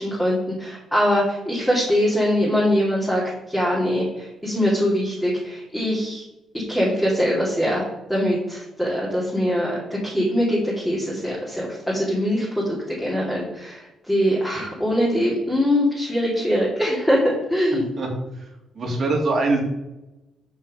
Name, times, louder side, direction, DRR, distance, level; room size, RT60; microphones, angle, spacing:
voice 1, 0.0-3.2 3.5-6.2 6.5-7.8 8.1-17.9, equal, 5° left, -6 dB, 2.5 m, -22 dB
voice 2, 18.8-19.6, right 3 dB, 50° right, 1 dB, 1.9 m, -22 dB
5.6 x 5.4 x 5.3 m, 0.96 s
cardioid pair, 90°, 0 cm